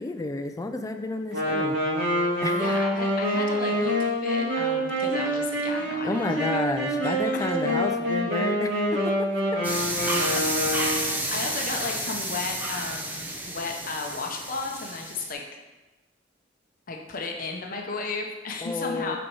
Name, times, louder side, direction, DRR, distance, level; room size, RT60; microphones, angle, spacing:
voice 1, 0.0-1.8 2.4-2.7 6.0-9.6 18.6-19.2, left 2 dB, 20° left, 6 dB, 0.3 m, -31 dB
Wind instrument woodwind instrument, 1.3-11.2, equal, 65° right, 2.0 m, -26 dB
voice 2, 2.6-6.5 7.0-7.5 10.9-15.4 16.9-19.2, left 3 dB, 50° left, 1 dB, 0.8 m, -34 dB
sound 1, 9.6-15.3, right 1 dB, 10° right, 0.7 m, -30 dB
6.1 x 4.1 x 4.7 m, 1.2 s
head